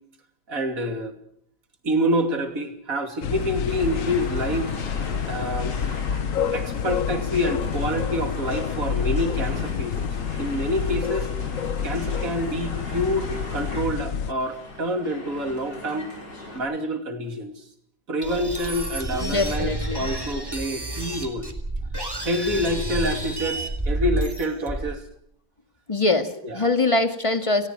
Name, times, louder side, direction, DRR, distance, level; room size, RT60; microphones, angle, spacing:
voice 1, 0.5-1.1 1.8-4.7 5.2-5.8 6.5-10.1 10.4-11.3 11.8-16.1 16.5-17.6 18.1-21.5 22.2-25.0 26.4-26.7, equal, 45° right, 6 dB, 3.1 m, -27 dB
sound 1, 3.2-14.3, left 7 dB, 55° left, 1.2 m, -28 dB
sound 2, 3.7-16.6, left 2 dB, 70° left, 5.9 m, -40 dB
sound 3, 18.2-25.0, right 1 dB, 10° right, 2.6 m, -30 dB
voice 2, 19.2-20.1 25.9-27.7, left 2 dB, 15° left, 7 dB, 2.0 m, -23 dB
30.0 x 18.5 x 4.7 m, 0.68 s
omnidirectional pair, 2.0 m